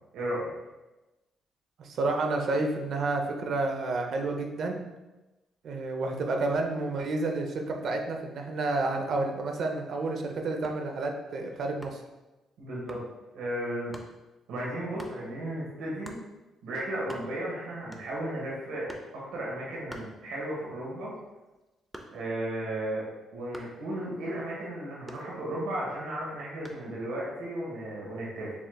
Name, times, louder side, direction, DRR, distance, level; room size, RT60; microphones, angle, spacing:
voice 1, 0.1-0.5 12.6-13.0 13.3-13.9 14.5-16.2 16.6-21.1 22.1-28.5, right 1 dB, 90° right, -5 dB, 1.4 m, -34 dB
voice 2, 1.8-4.8 5.6-12.0, right 2 dB, 65° right, 3 dB, 0.7 m, -30 dB
sound 1, 10.6-10.9 11.8-12.2 12.9-13.1 13.9-14.2 15.0-15.2 16.0-16.3 16.7-16.8 17.0-17.5 17.9-18.3 18.9-19.2 19.9-20.6 21.0-22.4 23.5-23.9 25.1-25.7 26.7-26.9, equal, 5° right, 0.6 m, -46 dB
6.9 x 3.3 x 2.3 m, 1.1 s
cardioid pair, 90°, 0 cm